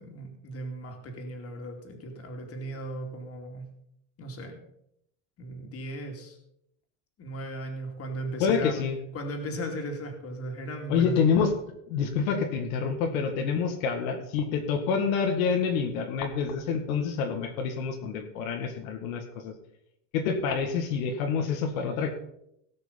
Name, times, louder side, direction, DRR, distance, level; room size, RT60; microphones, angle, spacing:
voice 1, 0.0-3.7 4.2-4.6 5.4-6.4 7.2-8.7 9.1-11.2, right 1 dB, 35° left, 3 dB, 2.7 m, -37 dB
voice 2, 8.4-9.0 10.9-11.5 11.9-19.5 20.1-22.1, left 6 dB, 85° left, 3 dB, 2.0 m, -27 dB
17.5 x 6.2 x 5.6 m, 0.76 s
supercardioid pair, 135°, 41 cm